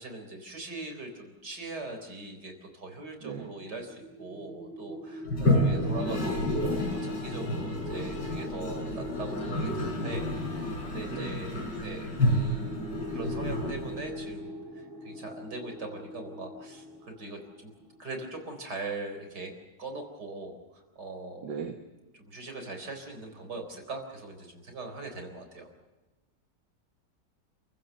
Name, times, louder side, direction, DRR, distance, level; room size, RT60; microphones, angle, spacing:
voice 1, 0.0-17.7 18.0-19.5 19.8-21.5 22.1-25.7, right 2 dB, 65° right, 5 dB, 4.6 m, -41 dB
voice 2, 3.2-3.5 5.7-5.9 11.1-11.4 21.4-21.7, right 6 dB, 80° right, 4 dB, 2.2 m, -37 dB
sound 1, 3.6-18.5, left 1 dB, 10° left, 4.2 m, -42 dB
Toilet flush, 5.2-14.4, left 1 dB, 70° left, 5.1 m, -30 dB
28.5 x 16.0 x 7.0 m, 1.2 s
omnidirectional pair, 1.9 m